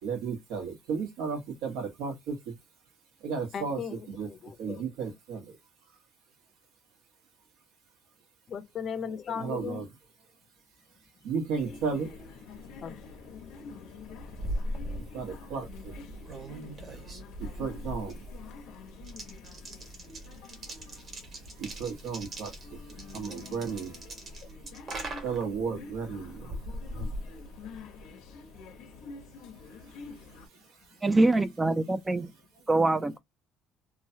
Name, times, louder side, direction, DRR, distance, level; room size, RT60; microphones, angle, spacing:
voice 1, 0.0-2.6 3.2-4.3 4.6-5.6 9.4-9.9 11.2-12.1 15.0-16.2 17.4-18.3 20.9-24.4 25.2-26.6 26.9-27.1 29.9-31.0, right 5 dB, 85° right, 1.3 m, -35 dB
voice 2, 3.5-4.8 8.5-9.8 12.8-13.1, left 7 dB, 40° left, 0.5 m, -37 dB
sound 1, 11.5-30.5, left 4 dB, 75° left, 0.8 m, -48 dB
sound 2, 14.0-28.0, right 1 dB, 40° right, 1.4 m, -40 dB
voice 3, 31.0-32.3 32.7-33.2, right 2 dB, 15° right, 0.3 m, -24 dB
3.0 x 2.3 x 2.7 m
cardioid pair, 135°, 0 cm